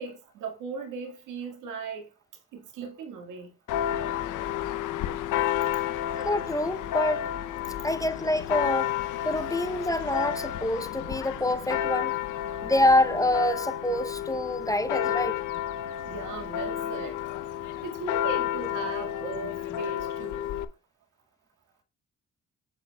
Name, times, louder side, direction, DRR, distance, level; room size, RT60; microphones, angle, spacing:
voice 1, 0.0-2.1 2.5-3.5 16.0-17.2 17.4-17.5 17.8-20.5, right 4 dB, 90° right, 1.8 m, -38 dB
Church bell, 3.7-20.7, left 11 dB, 85° left, 0.6 m, -31 dB
voice 2, 6.2-7.3 7.8-8.9 9.2-12.1 12.6-15.4, left 1 dB, 10° left, 0.5 m, -26 dB
7.9 x 7.6 x 2.2 m
cardioid pair, 90°, 30 cm